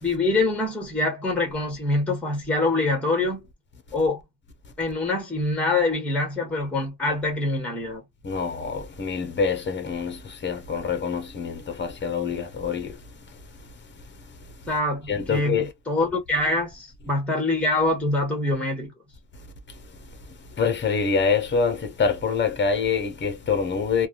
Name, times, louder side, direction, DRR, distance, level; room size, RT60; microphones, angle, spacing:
voice 1, 0.0-3.5 3.9-4.2 4.8-8.0 14.7-18.9, left 2 dB, 5° left, 1.1 m, -25 dB
voice 2, 8.2-13.0 15.1-15.7 20.6-24.1, left 5 dB, 25° left, 0.6 m, -25 dB
3.2 x 2.2 x 2.4 m
wide cardioid pair, 180°, 43 cm